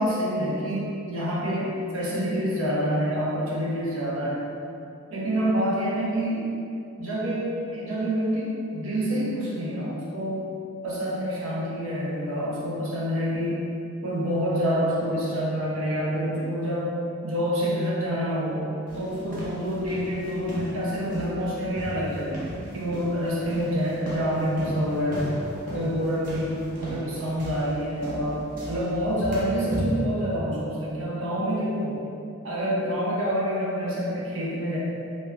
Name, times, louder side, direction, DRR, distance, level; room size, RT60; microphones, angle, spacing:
voice 1, 0.0-4.6 5.1-6.4 7.0-10.5 10.8-13.6 14.0-16.9 17.2-18.7 18.9-22.4 22.7-25.3 25.7-32.0 32.4-34.8, equal, 90° right, -6 dB, 0.6 m, -27 dB
sound 1, 18.9-30.1, equal, 40° right, 0.5 m, -36 dB
2.7 x 2.3 x 3.2 m, 2.6 s
head